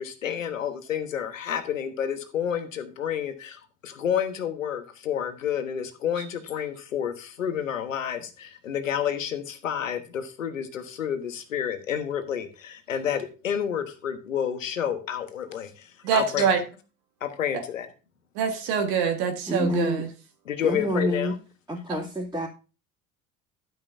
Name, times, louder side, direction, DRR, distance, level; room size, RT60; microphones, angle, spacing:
voice 1, 0.0-16.5 17.2-17.9 20.4-21.3, left 9 dB, 85° left, 8 dB, 1.3 m, -30 dB
voice 2, 16.0-16.6 18.3-20.1, right 7 dB, 65° right, 5 dB, 1.7 m, -24 dB
voice 3, 19.5-20.1 20.6-21.4 21.7-22.5, equal, 10° right, -7 dB, 2.7 m, -27 dB
12.0 x 9.1 x 2.7 m, 0.34 s
figure-of-eight pair, 60°, 38 cm